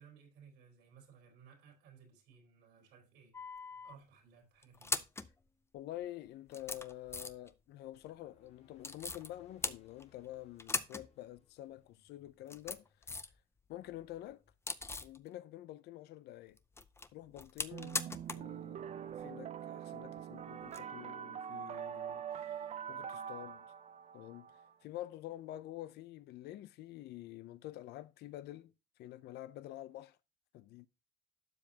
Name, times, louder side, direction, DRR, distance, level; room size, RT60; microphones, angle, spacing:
voice 1, 0.0-3.3 3.8-5.0, right 7 dB, 90° right, 3.8 m, -60 dB
sound 1, 3.3-4.0 4.6-5.3 6.0-6.1 6.5-7.5 8.8-9.3 9.6-10.3 10.6-11.1 11.4-11.5 12.3-13.4 13.7-15.2 16.6-18.5 18.8-18.9 20.7-20.8, left 3 dB, 15° left, 0.6 m, -40 dB
voice 2, 5.7-13.1 13.7-14.4 15.0-16.6 17.1-18.8 19.2-23.7 24.1-28.7 29.0-30.2 30.5-30.9, left 14 dB, 75° left, 0.6 m, -48 dB
sound 2, 7.8-12.4, left 7 dB, 40° left, 1.6 m, -68 dB
sound 3, 17.7-24.7, right 9 dB, 40° right, 0.5 m, -44 dB
12.0 x 7.2 x 2.8 m
cardioid pair, 110°, 17 cm